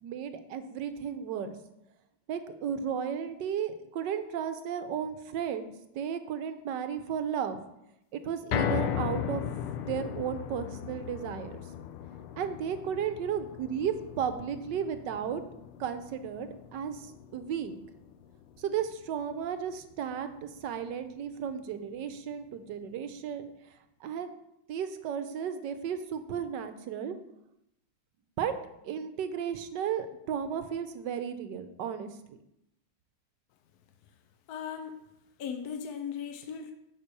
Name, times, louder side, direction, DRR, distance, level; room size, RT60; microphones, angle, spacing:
voice 1, 0.0-1.5 2.3-7.6 8.1-9.4 9.8-11.5 12.4-15.4 15.8-17.0 17.3-17.8 18.6-23.5 24.0-24.3 24.7-27.2 28.4-28.5 28.8-32.1, right 8 dB, 65° right, 9 dB, 1.2 m, -34 dB
sound 1, 8.5-20.8 21.2-21.3 21.7-21.8, left 10 dB, 85° left, 1.5 m, -37 dB
voice 2, 34.5-35.0 35.4-36.7, left 7 dB, 70° left, 6 dB, 0.9 m, -37 dB
11.0 x 4.4 x 6.8 m, 0.83 s
omnidirectional pair, 2.4 m